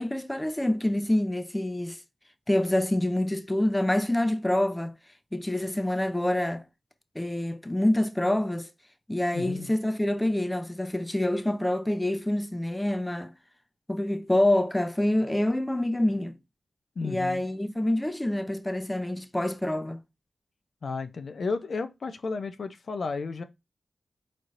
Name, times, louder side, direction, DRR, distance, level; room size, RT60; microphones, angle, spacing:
voice 1, 0.0-2.0 2.5-4.9 5.3-6.6 7.1-8.7 9.1-13.3 13.9-16.3 17.0-20.0, left 1 dB, 15° left, 0.6 m, -26 dB
voice 2, 9.3-9.7 17.0-17.4 20.8-23.4, left 4 dB, 70° left, 0.5 m, -33 dB
4.2 x 3.2 x 2.5 m
cardioid pair, 50°, 0 cm